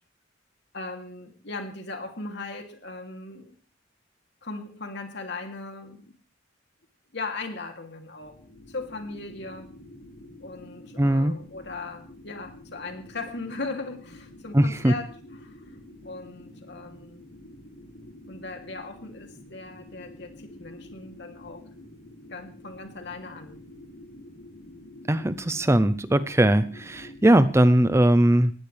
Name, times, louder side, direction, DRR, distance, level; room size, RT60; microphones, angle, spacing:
voice 1, 0.7-3.5 4.4-6.1 7.1-8.3 8.7-9.7 10.4-17.2 18.3-21.6 22.3-23.6, left 3 dB, 60° left, 4 dB, 2.9 m, -38 dB
sound 1, 8.2-27.5, left 1 dB, 85° left, 5.1 m, -48 dB
voice 2, 11.0-11.3 14.5-14.9 25.1-28.5, right 1 dB, 15° right, 13 dB, 0.6 m, -20 dB
19.5 x 15.5 x 3.4 m, 0.40 s
head